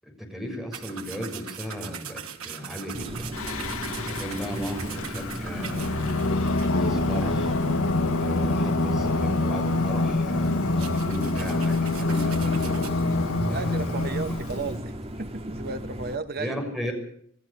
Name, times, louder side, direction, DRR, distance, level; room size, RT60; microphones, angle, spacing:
voice 1, 0.0-3.4 4.1-7.5 8.2-12.9 13.4-14.0 14.5-14.6 16.4-16.9, equal, ahead, 3 dB, 6.7 m, -36 dB
sound 1, 0.7-7.5 7.9-8.0 8.4-8.5 10.4-12.9, right 7 dB, 85° right, 2.6 m, -41 dB
sound 2, 2.9-16.2, equal, 30° right, 1.9 m, -35 dB
Singing, 3.3-14.7, left 2 dB, 85° left, 1.6 m, -26 dB
voice 2, 13.5-14.9 15.2-16.5, right 4 dB, 50° right, 10 dB, 1.0 m, -33 dB
28.0 x 14.5 x 6.9 m, 0.65 s
head